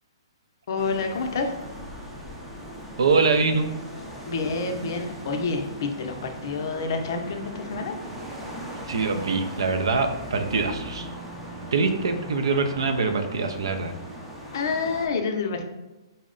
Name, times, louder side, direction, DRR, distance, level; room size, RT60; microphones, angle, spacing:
voice 1, 0.7-1.5 4.3-8.0 14.5-15.6, left 4 dB, 50° left, 4 dB, 0.5 m, -28 dB
sound 1, 0.8-15.1, equal, 5° right, 0.4 m, -39 dB
voice 2, 3.0-3.7 8.9-11.1 11.7-13.9, right 4 dB, 80° right, 7 dB, 0.5 m, -24 dB
4.0 x 2.1 x 3.7 m, 1.1 s
hypercardioid pair, 165°, 3 cm